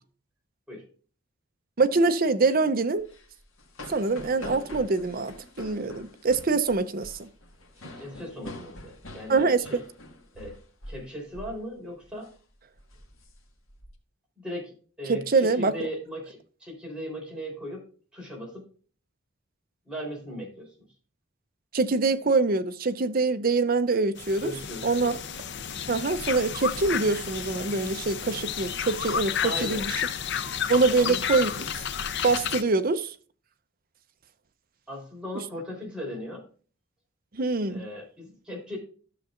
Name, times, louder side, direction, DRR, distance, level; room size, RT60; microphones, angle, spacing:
voice 1, 1.8-3.1 3.9-7.3 9.3-9.7 15.1-15.9 21.7-24.5 24.8-25.2 25.9-30.0 30.7-31.5 32.2-33.1 37.3-37.9, right 3 dB, 45° right, 0.6 m, -24 dB
sound 1, 3.0-11.1 11.3-11.6 12.0-12.3 12.8-13.9, left 1 dB, 75° left, 1.6 m, -45 dB
voice 2, 8.0-9.4 9.7-9.8 10.3-10.5 10.9-12.3 14.4-17.8 18.1-18.7 19.9-20.7 24.4-25.2 29.4-29.8 30.9-31.2 34.9-36.4 37.7-38.8, equal, 5° right, 3.7 m, -37 dB
sound 2, 24.2-32.6, left 8 dB, 55° left, 0.6 m, -32 dB
12.5 x 6.9 x 2.5 m
head